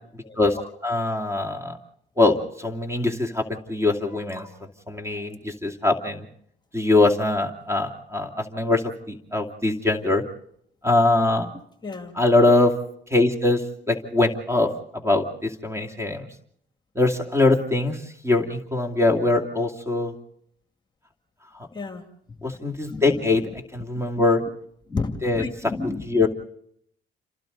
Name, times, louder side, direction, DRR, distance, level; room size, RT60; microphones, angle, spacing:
voice 1, 0.2-0.6 11.8-12.1 21.7-22.0 22.4-22.6 22.9-23.6 24.0-24.1 24.9-26.3, left 3 dB, 20° left, 6 dB, 2.2 m, -33 dB
voice 2, 0.8-1.8 2.2-4.5 4.9-6.3 6.7-8.8 9.1-10.2 10.8-11.5 12.2-12.7 13.1-13.6 13.9-16.3 17.0-18.0 18.2-20.1 22.4-23.4 23.7-24.4 25.2-25.4 26.1-26.3, left 2 dB, 15° right, 4 dB, 2.6 m, -22 dB
28.5 x 26.5 x 4.0 m, 0.69 s
cardioid pair, 90°, 20 cm